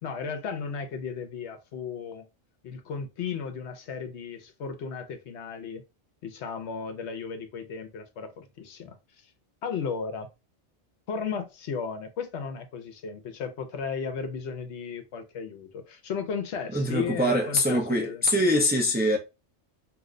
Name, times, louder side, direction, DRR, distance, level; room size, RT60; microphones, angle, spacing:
voice 1, 0.0-2.2 2.6-5.8 6.2-9.0 9.6-10.3 11.1-18.5, left 6 dB, 75° left, 0.9 m, -35 dB
voice 2, 16.7-19.2, equal, 15° right, 0.4 m, -24 dB
2.7 x 2.1 x 3.7 m
omnidirectional pair, 1.2 m